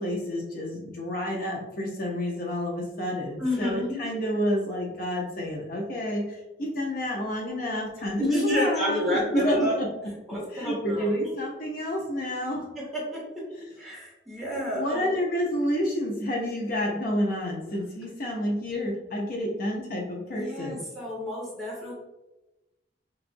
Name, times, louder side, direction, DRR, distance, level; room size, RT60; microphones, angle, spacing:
voice 1, 0.0-9.9 10.5-12.7 13.5-13.7 14.7-20.8, equal, 50° left, -2 dB, 0.7 m, -29 dB
voice 2, 3.4-4.0 8.2-9.8 10.3-11.3 12.9-13.2 13.8-15.1 20.3-21.9, equal, ahead, -5 dB, 1.4 m, -29 dB
6.0 x 2.5 x 2.6 m, 1.0 s
head